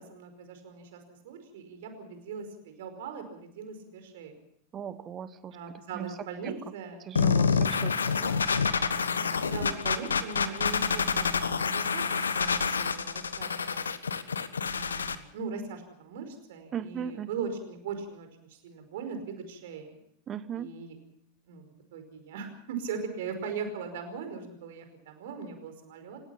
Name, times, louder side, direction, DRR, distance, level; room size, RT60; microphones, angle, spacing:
voice 1, 0.0-4.4 5.5-7.0 8.9-13.9 14.7-19.9 20.5-21.0 21.5-21.7 21.9-26.2, right 5 dB, 55° right, 7 dB, 5.0 m, -40 dB
voice 2, 4.7-5.6 5.9-6.1 6.4-6.5 7.1-8.4 16.7-17.3 20.3-20.7, right 8 dB, 25° right, 15 dB, 1.3 m, -38 dB
sound 1, 7.2-15.2, left 5 dB, 70° left, 1.3 m, -27 dB
29.0 x 17.0 x 5.8 m, 0.70 s
figure-of-eight pair, 90°, 0 cm